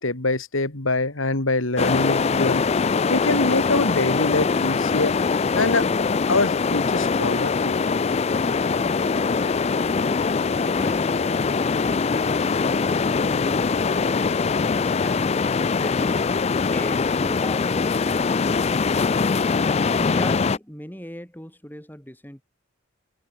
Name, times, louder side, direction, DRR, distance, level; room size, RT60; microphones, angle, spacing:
voice 1, 0.0-2.6 3.1-5.1 5.6-5.9 6.3-7.7, left 2 dB, 75° left, 2.6 m, -24 dB
sound 1, 1.8-20.6, left 4 dB, 30° left, 0.4 m, -22 dB
voice 2, 8.2-19.2 19.9-22.4, equal, 10° left, 5.8 m, -39 dB
head